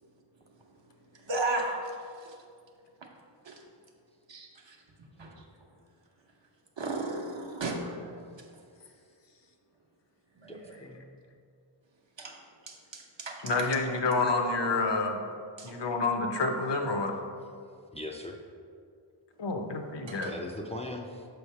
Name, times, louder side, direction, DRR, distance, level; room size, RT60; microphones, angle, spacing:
voice 1, 1.2-1.8 2.2-2.4 3.4-3.6 4.3-4.8 5.2-5.4 6.8-8.2 10.4-10.7 12.2-13.7 15.6-15.8 20.1-20.3, right 2 dB, 65° right, 0 dB, 0.9 m, -35 dB
voice 2, 10.5-11.0 17.9-18.4 20.2-21.3, left 1 dB, 15° left, 1 dB, 0.4 m, -39 dB
voice 3, 13.4-15.2 15.6-17.1 19.4-20.3, left 3 dB, 60° left, 4 dB, 0.7 m, -28 dB
6.3 x 3.2 x 5.5 m, 2.3 s
wide cardioid pair, 90°, 48 cm